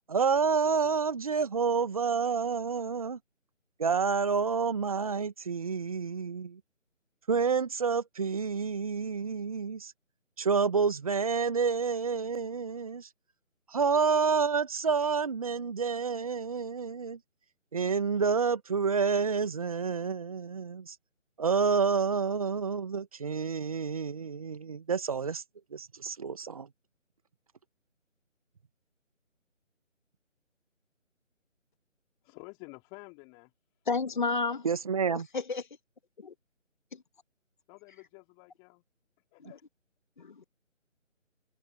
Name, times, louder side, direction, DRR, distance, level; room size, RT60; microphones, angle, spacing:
voice 1, 0.1-3.2 3.8-6.6 7.3-9.9 10.4-13.1 13.7-17.2 17.7-20.9 21.4-25.4 25.7-26.7 34.6-35.3, right 5 dB, 25° right, 1.6 m, -29 dB
voice 2, 32.2-33.5 37.7-38.8 39.3-39.6, left 33 dB, 10° left, 3.7 m, -50 dB
voice 3, 33.9-34.7 35.3-35.6 36.2-36.3 40.2-40.4, left 4 dB, 35° left, 2.5 m, -30 dB
figure-of-eight pair, 155°, 39 cm